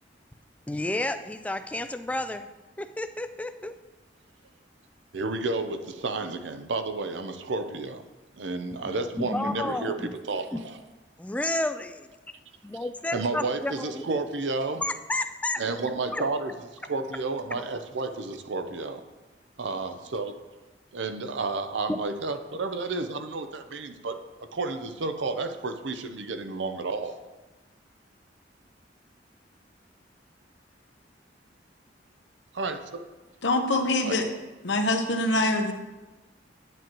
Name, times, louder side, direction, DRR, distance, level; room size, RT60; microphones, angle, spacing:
voice 1, 0.7-2.5 2.8-3.7 8.8-10.2 10.5-10.6 11.2-12.1 12.6-14.1 14.8-15.7 16.1-16.4 16.9-17.0 17.5-17.6 21.9-22.0, left 1 dB, 10° left, 9 dB, 0.3 m, -31 dB
voice 2, 5.1-8.0 8.4-10.8 13.1-14.8 15.6-16.5 16.8-19.0 19.6-20.3 20.9-24.2 24.5-27.2 32.5-33.0 34.0-34.3, right 3 dB, 80° right, 8 dB, 0.7 m, -31 dB
voice 3, 33.4-34.2 34.6-35.7, left 2 dB, 75° left, 5 dB, 1.0 m, -24 dB
9.1 x 9.0 x 3.0 m, 1.2 s
head